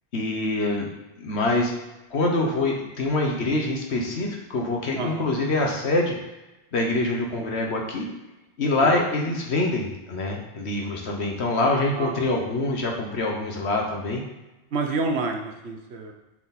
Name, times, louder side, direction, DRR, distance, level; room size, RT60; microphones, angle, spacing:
voice 1, 0.1-0.9 1.2-1.7 2.1-6.1 6.7-8.1 8.6-14.2, left 2 dB, 90° left, 0 dB, 1.5 m, -25 dB
voice 2, 11.9-12.3 14.7-16.1, right 3 dB, 80° right, 2 dB, 1.2 m, -28 dB
7.2 x 5.0 x 4.2 m, 1.0 s
omnidirectional pair, 1.1 m